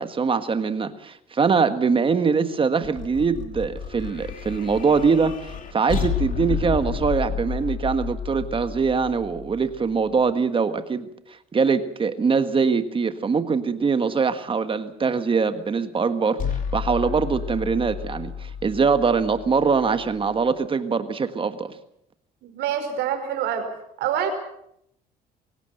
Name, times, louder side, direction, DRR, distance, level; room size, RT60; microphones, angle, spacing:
voice 1, 0.0-21.7, right 5 dB, 30° right, 10 dB, 1.6 m, -23 dB
sound 1, 2.8-10.1 16.4-20.5, left 7 dB, 50° left, 3.0 m, -31 dB
voice 2, 22.4-23.7 24.0-24.3, right 9 dB, 85° right, 6 dB, 5.3 m, -26 dB
25.0 x 16.5 x 7.9 m, 0.75 s
cardioid pair, 110°, 17 cm